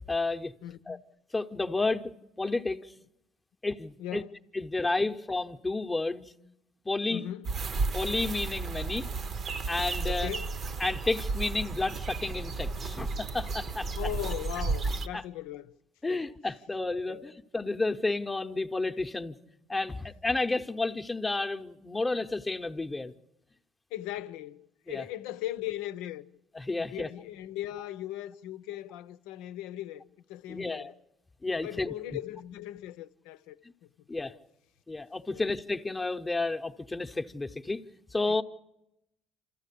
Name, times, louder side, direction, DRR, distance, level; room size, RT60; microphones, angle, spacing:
voice 1, 0.1-0.5 0.9-1.0 1.3-2.1 2.4-2.9 3.6-4.2 4.5-6.2 6.8-7.2 7.9-9.1 9.7-10.3 10.8-13.9 15.1-15.2 16.0-19.4 19.7-23.1 24.9-25.0 26.5-27.1 30.5-30.9 31.4-31.9 34.1-34.3 34.9-37.8 38.1-38.4, left 3 dB, 15° left, 0.9 m, -31 dB
voice 2, 0.6-1.0 4.0-4.3 5.0-5.1 7.1-7.5 10.0-10.5 14.0-15.7 16.1-16.3 17.1-17.2 23.9-26.3 26.7-30.0 30.3-30.9 31.6-33.6 33.8-33.9 34.3-34.4 35.3-35.4 38.3-38.4, left 13 dB, 85° left, 0.7 m, -39 dB
sound 1, 7.4-15.1, right 4 dB, 45° right, 0.8 m, -33 dB
27.5 x 14.0 x 8.4 m
supercardioid pair, 90°, 0 cm